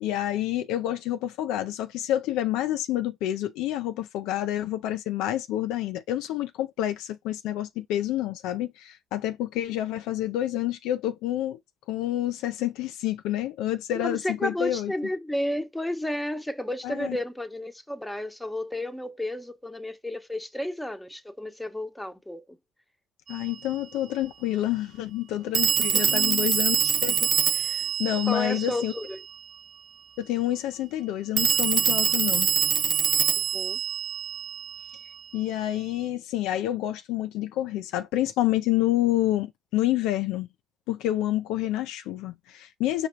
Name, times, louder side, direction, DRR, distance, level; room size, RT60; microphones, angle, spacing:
voice 1, 0.0-11.6 11.9-14.9 16.8-17.2 23.3-28.9 30.2-32.5 35.3-40.5 40.9-43.1, left 13 dB, 70° left, 0.4 m, -28 dB
voice 2, 13.9-22.4 25.9-26.5 28.3-29.2 33.3-33.8, left 1 dB, 5° left, 1.0 m, -32 dB
Telephone, 23.3-23.4 25.5-29.2 31.4-35.1, right 8 dB, 50° right, 0.4 m, -25 dB
5.1 x 2.3 x 4.4 m
hypercardioid pair, 55°, 0 cm